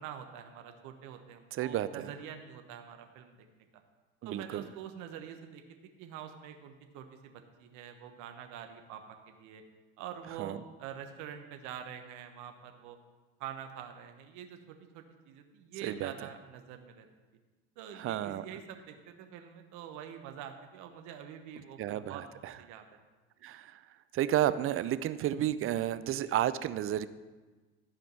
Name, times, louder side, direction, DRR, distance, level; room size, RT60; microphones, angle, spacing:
voice 1, 0.0-3.5 4.2-9.6 10.0-13.0 13.4-17.1 17.8-22.2 22.6-23.0, right 9 dB, 60° right, 6 dB, 1.2 m, -46 dB
voice 2, 1.5-2.1 4.2-4.7 10.4-10.6 15.8-16.1 17.9-18.5 21.8-22.6 23.4-23.8 24.1-27.1, right 12 dB, 40° right, 14 dB, 0.5 m, -32 dB
12.5 x 5.1 x 6.0 m, 1.3 s
hypercardioid pair, 65°, 34 cm